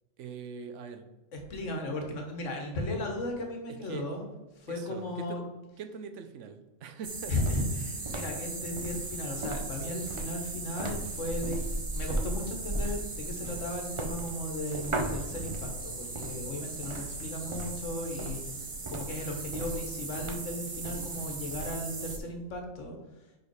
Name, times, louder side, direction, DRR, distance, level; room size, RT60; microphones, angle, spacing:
voice 1, 0.2-1.1 3.7-4.1 4.7-5.5 5.8-7.3, right 6 dB, 75° right, 8 dB, 1.0 m, -42 dB
voice 2, 1.3-4.3 4.5-5.4 7.3-11.6 11.9-18.4 18.9-23.0, left 1 dB, 80° left, 3 dB, 1.6 m, -36 dB
sound 1, 7.0-22.2, right 2 dB, 30° right, 0.6 m, -36 dB
5.3 x 5.0 x 4.6 m, 1.1 s
omnidirectional pair, 1.3 m